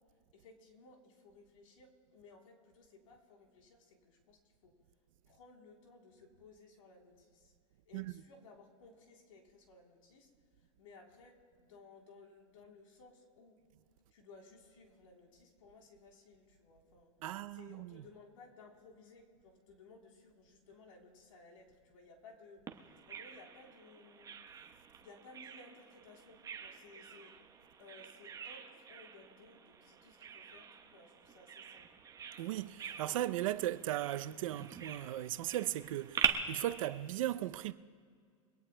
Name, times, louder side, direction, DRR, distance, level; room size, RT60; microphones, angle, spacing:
voice 1, 0.3-4.7 5.2-7.5 7.8-10.3 10.6-13.6 14.1-17.1 17.5-22.6 23.1-24.3 25.0-27.3 27.8-31.9, left 3 dB, 80° left, 3.5 m, -59 dB
voice 2, 17.2-18.0 32.4-37.7, right 14 dB, 75° right, 0.6 m, -37 dB
Bird vocalization bird call bird song, 22.7-36.3, right 8 dB, 20° right, 1.0 m, -43 dB
24.0 x 18.0 x 2.2 m
supercardioid pair, 130°, 17 cm